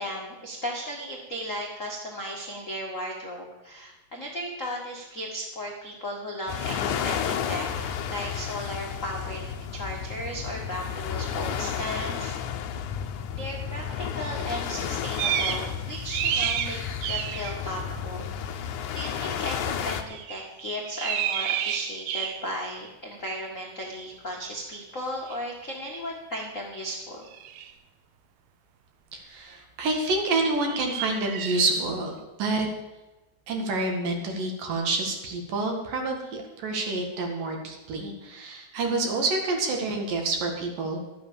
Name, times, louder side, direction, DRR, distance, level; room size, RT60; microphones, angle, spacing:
voice 1, 0.0-9.4 9.7-12.4 13.3-18.3 18.9-27.2, equal, 55° left, -2 dB, 0.8 m, -35 dB
sound 1, 6.5-20.0, left 8 dB, 80° left, 1.7 m, -32 dB
sound 2, 15.2-15.7 16.0-17.5 20.1-20.4 20.9-22.6 25.3-25.4 27.3-27.7 30.6-31.7, right 9 dB, 80° right, 2.6 m, -30 dB
voice 2, 29.1-32.7 33.5-41.0, right 3 dB, 60° right, 2 dB, 3.3 m, -28 dB
13.0 x 8.7 x 7.0 m, 1.1 s
omnidirectional pair, 4.7 m